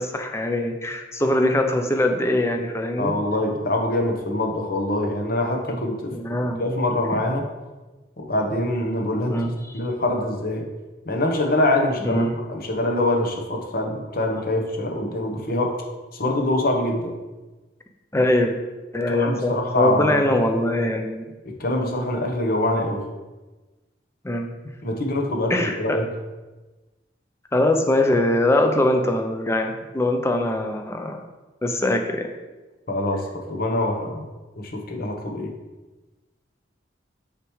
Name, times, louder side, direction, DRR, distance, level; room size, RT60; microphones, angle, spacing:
voice 1, 0.0-3.1 6.1-6.8 9.3-9.8 12.0-12.3 18.1-18.5 18.9-21.3 24.2-24.5 25.5-26.0 27.5-31.2 31.6-32.3, left 1 dB, 15° left, 4 dB, 0.5 m, -22 dB
voice 2, 3.0-6.1 6.4-7.5 8.2-9.5 9.7-10.6 11.0-15.7 16.1-17.1 19.1-20.2 21.4-23.0 24.8-26.1 32.9-34.3 34.6-35.5, left 1 dB, 50° left, 2 dB, 1.0 m, -24 dB
6.6 x 6.0 x 3.2 m, 1.2 s
head